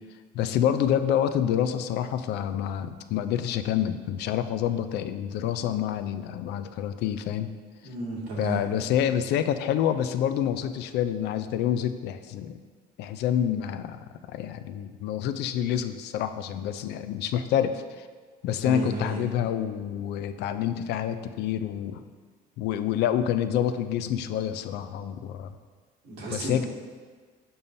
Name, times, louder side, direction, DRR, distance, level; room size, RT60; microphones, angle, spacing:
voice 1, 0.3-7.5 8.4-12.6 13.0-14.0 14.3-18.1 18.4-22.0 22.6-25.5 26.3-26.7, left 10 dB, 80° left, 10 dB, 0.4 m, -27 dB
voice 2, 7.8-8.6 18.6-19.2 26.0-26.7, right 2 dB, 85° right, -4 dB, 1.6 m, -32 dB
6.9 x 5.5 x 2.6 m, 1.5 s
cardioid pair, 110°, 17 cm